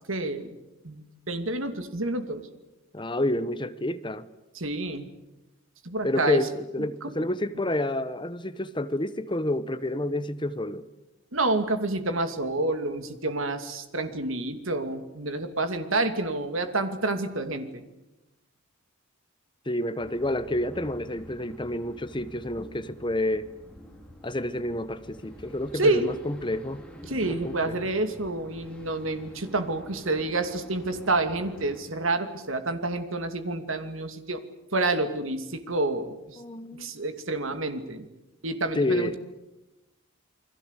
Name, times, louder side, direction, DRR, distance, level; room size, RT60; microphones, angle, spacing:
voice 1, 0.1-0.6 0.8-2.5 4.5-5.1 5.8-6.5 7.0-7.3 11.3-17.8 25.7-26.1 27.1-34.4 34.7-36.4 36.7-38.1 38.4-39.2, right 2 dB, 70° right, 2.6 m, -28 dB
voice 2, 2.9-4.3 6.0-10.9 19.7-23.4 24.2-27.7 36.4-36.9 38.7-39.1, left 1 dB, 20° left, 1.1 m, -29 dB
sound 1, 20.0-31.8, equal, 5° left, 4.3 m, -48 dB
29.0 x 21.5 x 8.3 m
head